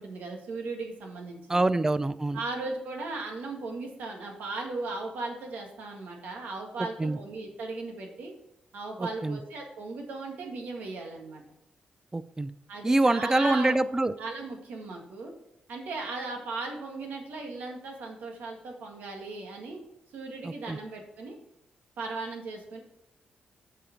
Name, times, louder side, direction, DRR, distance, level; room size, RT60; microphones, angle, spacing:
voice 1, 0.0-1.7 2.3-8.3 8.7-11.4 12.7-13.7 14.2-15.3 15.7-19.8 20.1-21.4 22.0-22.8, right 3 dB, 80° right, 2 dB, 1.8 m, -37 dB
voice 2, 1.5-2.4 6.8-7.2 9.0-9.4 12.1-12.5 12.8-14.1 20.4-20.8, right 2 dB, 20° right, 15 dB, 0.4 m, -25 dB
7.3 x 5.0 x 5.8 m, 0.82 s
cardioid pair, 70°, 3 cm